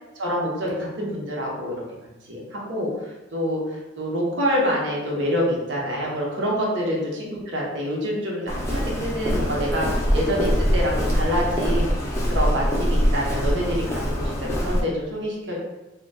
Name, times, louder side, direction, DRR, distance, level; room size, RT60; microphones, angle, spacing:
voice 1, 0.2-1.8 2.3-11.9 12.3-15.6, equal, 75° right, -3 dB, 0.8 m, -26 dB
Walk footsteps, 8.5-14.8, equal, 15° left, 0.5 m, -23 dB
3.8 x 2.2 x 2.2 m, 1.0 s
head